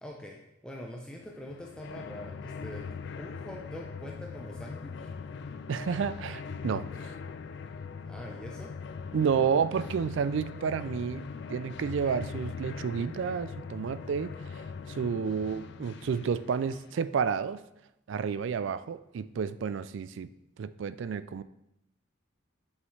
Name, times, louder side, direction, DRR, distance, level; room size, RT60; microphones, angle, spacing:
voice 1, 0.0-2.8 3.2-5.1 8.1-8.7, equal, 5° left, 0 dB, 0.5 m, -44 dB
sound 1, 1.2-17.0, left 5 dB, 55° left, 0.3 m, -41 dB
voice 2, 5.7-7.1 9.1-14.6 14.9-17.6 18.1-20.3 20.6-21.4, right 6 dB, 65° right, 15 dB, 0.3 m, -30 dB
8.0 x 5.4 x 3.2 m, 0.85 s
head